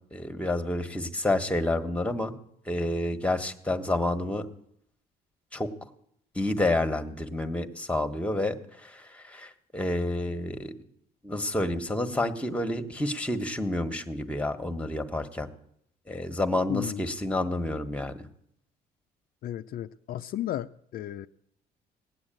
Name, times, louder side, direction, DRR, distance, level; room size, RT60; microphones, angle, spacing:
voice 1, 0.1-2.3 2.7-4.5 5.5-5.7 6.3-10.7 11.2-15.5 16.1-18.3, left 1 dB, 5° left, 8 dB, 1.3 m, -29 dB
voice 2, 16.7-17.1 19.4-21.3, left 12 dB, 60° left, 8 dB, 0.5 m, -34 dB
18.0 x 8.1 x 9.0 m, 0.73 s
cardioid pair, 110°, 17 cm